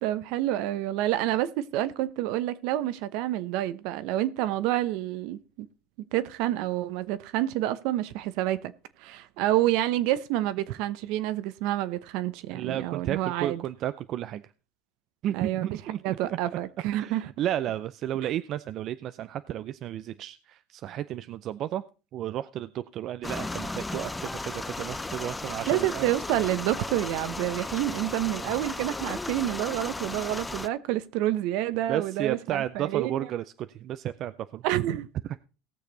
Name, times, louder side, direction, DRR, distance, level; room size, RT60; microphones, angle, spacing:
voice 1, 0.0-5.7 6.1-8.7 9.0-13.6 15.3-15.8 16.0-17.3 25.7-33.3 34.6-35.1, right 14 dB, 70° right, 0.8 m, -28 dB
voice 2, 12.5-14.4 15.2-16.4 16.9-21.8 22.1-26.1 31.9-34.6, right 11 dB, 50° right, 0.4 m, -33 dB
sound 1, 23.2-30.7, left 2 dB, 10° left, 0.5 m, -35 dB
18.0 x 6.6 x 3.9 m
supercardioid pair, 110°, 0 cm